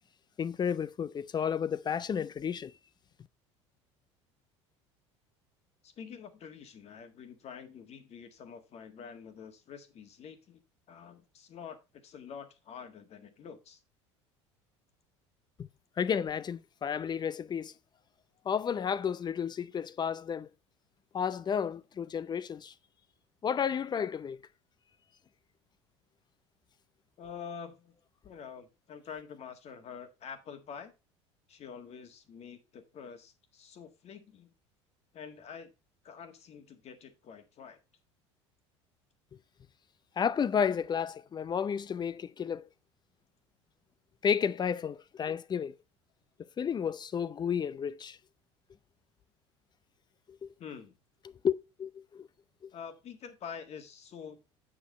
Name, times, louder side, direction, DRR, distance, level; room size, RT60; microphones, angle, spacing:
voice 1, 0.4-2.7 15.6-15.7 16.0-17.7 18.5-20.5 21.1-22.7 23.4-24.4 40.2-42.7 44.2-45.8 46.6-48.2 50.4-50.5 51.4-51.5 51.8-52.3, left 7 dB, 30° left, 0.6 m, -32 dB
voice 2, 5.8-10.6 10.9-13.8 27.2-27.9 28.2-30.9 31.5-34.5 35.1-35.7 36.0-37.8 50.6-51.0 52.7-54.4, left 7 dB, 45° left, 1.7 m, -47 dB
8.5 x 5.4 x 4.1 m
hypercardioid pair, 70°, 15 cm